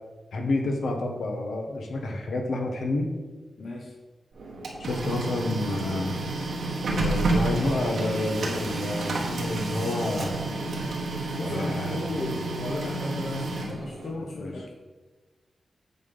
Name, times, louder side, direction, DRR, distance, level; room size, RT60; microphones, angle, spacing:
voice 1, 0.3-3.1 4.8-6.2 6.9-10.4 11.4-12.0 14.3-14.5, left 2 dB, 80° left, 2 dB, 1.3 m, -29 dB
voice 2, 3.6-3.9 11.3-14.7, left 2 dB, 65° left, -1 dB, 0.9 m, -34 dB
Printer, 4.4-14.1, right 2 dB, 85° right, 1.4 m, -30 dB
8.3 x 4.3 x 5.5 m, 1.3 s
wide cardioid pair, 90°, 0 cm